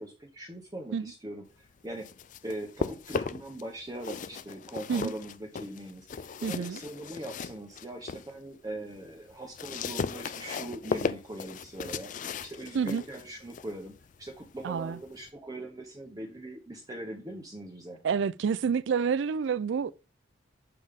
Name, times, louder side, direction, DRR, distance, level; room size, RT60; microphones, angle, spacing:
voice 1, 0.0-2.1 2.4-12.1 12.4-13.9 14.2-18.0, right 1 dB, 20° right, 0.9 m, -41 dB
sound 1, 1.8-3.6 3.9-8.3 8.7-15.3, left 5 dB, 40° left, 0.4 m, -37 dB
voice 2, 6.4-6.8 12.7-13.0 14.6-15.0 18.0-19.9, right 6 dB, 65° right, 0.3 m, -28 dB
7.9 x 5.3 x 3.5 m
head